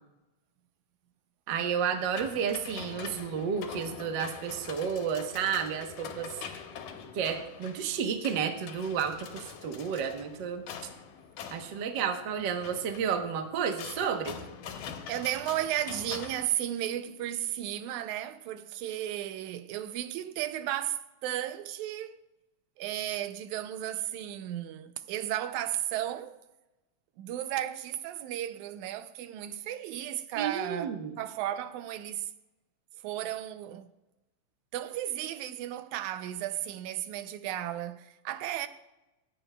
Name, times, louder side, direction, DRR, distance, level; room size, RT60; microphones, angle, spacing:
voice 1, 1.5-6.3 7.1-10.6 11.5-14.4 30.4-31.1, right 7 dB, 60° right, 1.2 m, -31 dB
sound 1, 1.9-16.4, left 7 dB, 90° left, 2.4 m, -44 dB
voice 2, 15.1-22.2 22.8-26.4 27.2-32.3 33.0-33.9 34.7-38.7, right 12 dB, 85° right, 2.0 m, -34 dB
24.0 x 8.5 x 2.2 m
omnidirectional pair, 3.3 m